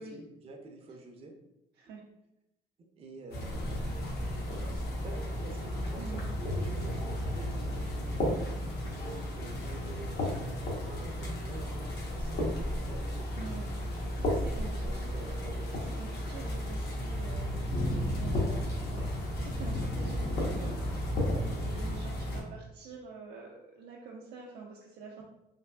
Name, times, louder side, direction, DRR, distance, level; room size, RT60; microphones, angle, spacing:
voice 1, 0.0-1.3 3.0-3.8 4.6-8.2 8.8-10.3 10.8-13.6 14.2-15.7 20.2-20.9, right 2 dB, 35° right, 2 dB, 0.5 m, -49 dB
sound 1, 3.3-22.4, left 1 dB, 75° left, 0.9 m, -33 dB
voice 2, 13.3-15.0 15.8-20.7 21.4-25.2, right 4 dB, 90° right, -2 dB, 0.4 m, -46 dB
3.3 x 2.4 x 2.2 m, 0.88 s
cardioid pair, 110°, 17 cm